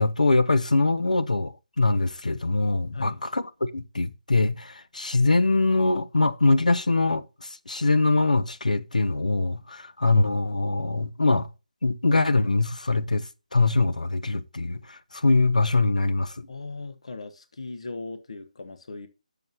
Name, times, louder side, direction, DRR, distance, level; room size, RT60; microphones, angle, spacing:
voice 1, 0.0-11.5 11.8-16.5, left 3 dB, 70° left, 0.7 m, -23 dB
voice 2, 2.9-3.2 16.5-19.1, left 3 dB, 50° left, 1.1 m, -38 dB
10.5 x 6.9 x 2.8 m
figure-of-eight pair, 150°, 4 cm